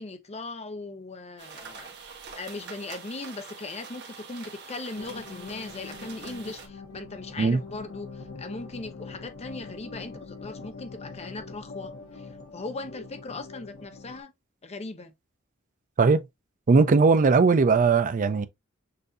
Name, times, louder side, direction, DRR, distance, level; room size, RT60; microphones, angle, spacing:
voice 1, 0.0-1.9 2.4-12.3 12.5-14.3 14.6-15.1, left 3 dB, 30° left, 0.7 m, -39 dB
sound 1, 1.4-6.7, right 5 dB, 55° right, 1.2 m, -44 dB
sound 2, 5.0-14.2, left 4 dB, 80° left, 0.8 m, -43 dB
voice 2, 16.7-18.5, right 4 dB, 40° right, 0.4 m, -19 dB
6.6 x 2.7 x 2.5 m
head